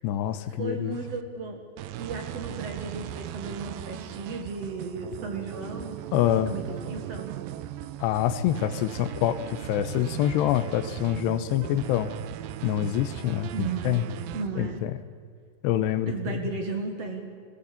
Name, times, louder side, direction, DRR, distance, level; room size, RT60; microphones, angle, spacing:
voice 1, 0.0-0.9 6.1-6.5 8.0-12.1 12.6-14.0 14.6-14.9 15.6-16.4, left 11 dB, 90° left, 12 dB, 3.0 m, -26 dB
voice 2, 0.6-1.6 2.0-6.0 6.4-7.3 13.5-14.9 16.1-17.3, right 4 dB, 50° right, 4 dB, 2.3 m, -35 dB
sound 1, 0.9-1.2 1.8-14.8, right 12 dB, 85° right, 2.0 m, -38 dB
19.5 x 17.5 x 8.5 m, 2.1 s
omnidirectional pair, 4.8 m